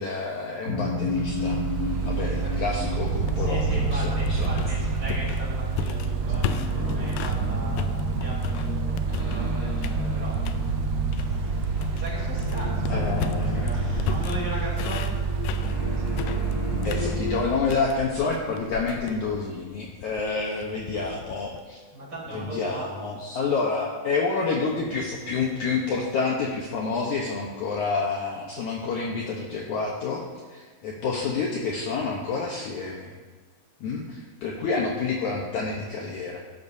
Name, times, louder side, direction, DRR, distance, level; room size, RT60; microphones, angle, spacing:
voice 1, 0.0-1.6 2.0-4.5 12.9-13.7 16.8-21.8 22.3-30.2 30.5-33.1 33.8-36.4, left 4 dB, 65° left, -1 dB, 2.0 m, -28 dB
sound 1, 0.6-17.4, left 1 dB, 40° left, 1.4 m, -31 dB
Mechanical fan, 1.0-17.9, right 5 dB, 85° right, 1.9 m, -29 dB
sound 2, 3.1-7.4 7.8-9.5 9.8-10.7 11.1-21.6, left 9 dB, 80° left, 2.0 m, -36 dB
voice 2, 3.4-7.9 8.2-10.4 11.9-13.8 14.0-15.2 21.0-21.1 21.9-22.9, right 1 dB, 30° right, -6 dB, 4.5 m, -38 dB
16.0 x 12.0 x 2.7 m, 1.4 s
omnidirectional pair, 4.4 m